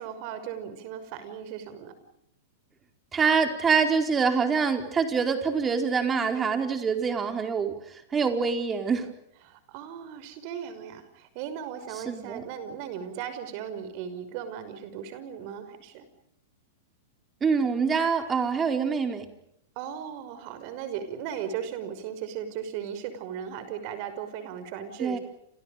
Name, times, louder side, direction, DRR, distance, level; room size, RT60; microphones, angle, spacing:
voice 1, 0.0-1.9 9.5-16.0 19.8-25.2, right 8 dB, 50° right, 11 dB, 5.8 m, -37 dB
voice 2, 3.1-7.7 8.1-9.1 12.1-12.4 17.4-19.3 25.0-25.2, right 5 dB, 20° right, 6 dB, 4.6 m, -25 dB
30.0 x 28.5 x 5.2 m, 0.76 s
hypercardioid pair, 105°, 0 cm